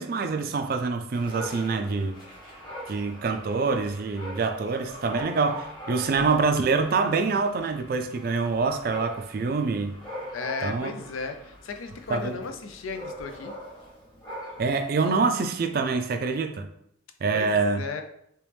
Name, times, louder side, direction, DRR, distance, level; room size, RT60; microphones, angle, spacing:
voice 1, 0.0-2.2 2.9-10.0 10.6-10.9 12.1-12.3 14.6-16.7 17.2-17.8, right 4 dB, 45° right, 0.3 m, -26 dB
Dog, 1.1-14.9, equal, 20° left, 1.0 m, -42 dB
voice 2, 10.3-13.5 17.3-18.0, left 4 dB, 85° left, 0.5 m, -35 dB
3.1 x 3.0 x 3.3 m
head